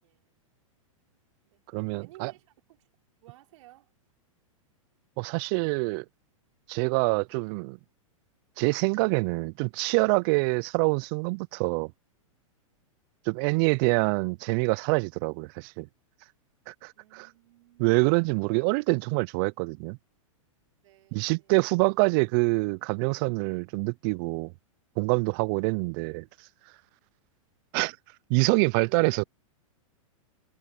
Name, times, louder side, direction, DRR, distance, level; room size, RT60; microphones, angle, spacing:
voice 1, 0.0-0.4 1.4-1.6 2.0-2.9 3.2-3.9 17.0-18.4 20.8-21.6, right 16 dB, 60° right, 5.7 m, -55 dB
voice 2, 1.7-2.3 5.2-6.0 6.7-7.8 8.6-11.9 13.3-15.9 16.7-17.3 17.8-20.0 21.1-24.5 25.0-26.3 27.7-28.0 28.3-29.2, right 31 dB, 40° right, 0.4 m, -26 dB
hypercardioid pair, 125°, 18 cm